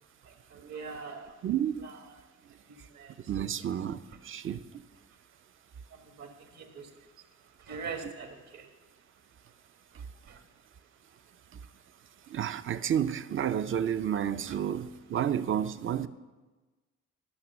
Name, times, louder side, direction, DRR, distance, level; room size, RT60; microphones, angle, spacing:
voice 1, 0.2-1.3 1.8-1.9 2.7-3.1 5.9-6.9 7.7-8.7 10.0-10.4, right 5 dB, 65° right, 1.7 m, -43 dB
voice 2, 1.4-1.9 3.3-4.8 8.0-8.1 11.5-11.6 12.3-16.1, right 9 dB, 45° right, 0.6 m, -31 dB
12.5 x 6.0 x 7.1 m
cardioid pair, 90°, 30 cm